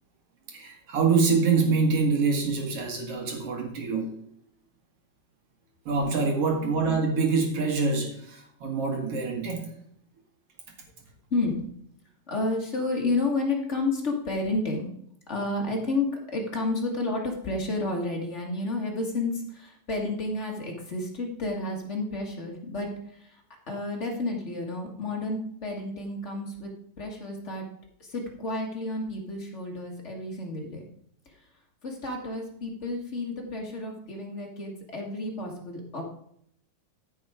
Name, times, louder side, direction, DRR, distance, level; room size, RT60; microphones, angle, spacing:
voice 1, 0.5-4.1 5.9-9.7, right 4 dB, 50° right, 2 dB, 2.4 m, -25 dB
voice 2, 11.3-11.7 12.3-14.9 15.3-27.6 28.0-30.8 31.2-31.5 31.8-36.0, left 2 dB, 40° left, 0 dB, 0.9 m, -31 dB
14.0 x 5.7 x 4.9 m, 0.68 s
omnidirectional pair, 4.2 m